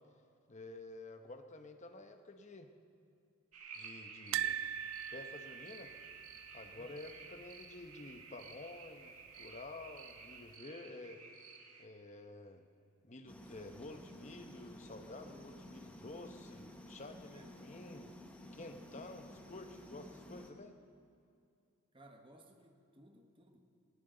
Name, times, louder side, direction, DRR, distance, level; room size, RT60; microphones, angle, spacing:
voice 1, 0.5-2.7 3.7-4.6 5.1-5.9 6.5-11.2 11.8-12.7 13.0-18.1 18.5-20.7, left 2 dB, 30° left, 6 dB, 0.9 m, -50 dB
sound 1, 3.5-11.9, right 5 dB, 85° right, 1.7 m, -53 dB
sound 2, 4.3-7.4 7.6-7.8 8.1-8.2 9.4-10.0 10.5-10.6, right 10 dB, 60° right, 0.3 m, -41 dB
voice 2, 6.7-7.1 15.2-15.7 17.3-17.6 21.9-23.6, right 1 dB, 25° right, 4 dB, 1.3 m, -60 dB
sound 3, 13.3-20.5, left 1 dB, 5° left, 1.1 m, -53 dB
19.0 x 18.0 x 3.9 m, 2.5 s
head